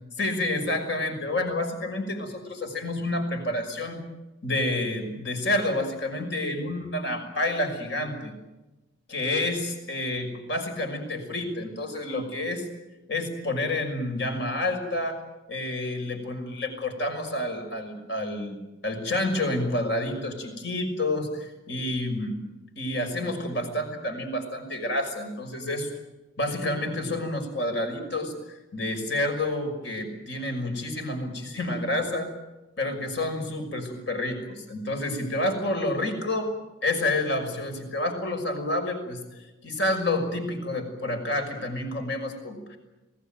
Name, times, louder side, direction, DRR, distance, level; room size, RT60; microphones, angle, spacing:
voice 1, 0.2-4.0 4.4-8.3 9.1-12.7 13.1-15.2 15.5-22.4 22.8-25.9 26.4-32.3 32.8-36.5 36.8-39.2 39.6-42.8, left 1 dB, 60° left, 6 dB, 6.0 m, -29 dB
27.0 x 18.0 x 9.2 m, 1.1 s
head